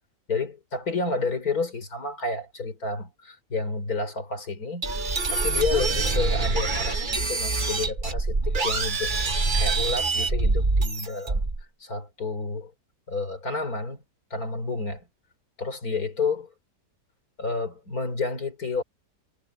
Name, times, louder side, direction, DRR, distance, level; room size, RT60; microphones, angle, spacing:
voice 1, 0.3-4.9 5.3-9.1 9.5-11.4 11.8-12.7 13.1-14.0 14.3-15.0 15.6-16.5 17.4-18.8, left 3 dB, 60° left, 4.3 m, -30 dB
sound 1, 4.8-11.6, right 3 dB, 30° right, 1.6 m, -25 dB
omnidirectional pair, 1.7 m